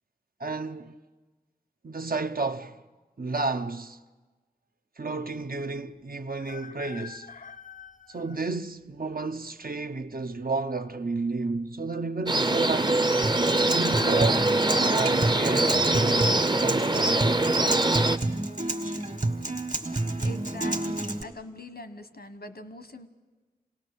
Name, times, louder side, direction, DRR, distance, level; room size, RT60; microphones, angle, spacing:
voice 1, 0.4-1.0 1.8-2.8 3.2-4.0 5.0-7.3 8.1-13.0 13.7-17.2, right 3 dB, 70° right, 0.7 m, -32 dB
sound 1, 6.4-8.4 9.1-9.2 10.3-10.9 11.2-11.3 11.5-11.6 13.4-16.0 16.6-17.0 18.1-18.5 18.7-18.8 19.3-19.7 20.2-20.4, left 7 dB, 55° left, 0.6 m, -45 dB
sound 2, 12.3-18.2, right 2 dB, 30° right, 0.6 m, -23 dB
Acoustic guitar, 13.2-21.2, right 2 dB, 55° right, 1.6 m, -29 dB
voice 2, 20.2-23.1, left 1 dB, 90° left, 1.2 m, -42 dB
27.5 x 18.0 x 6.9 m
wide cardioid pair, 45°, 16 cm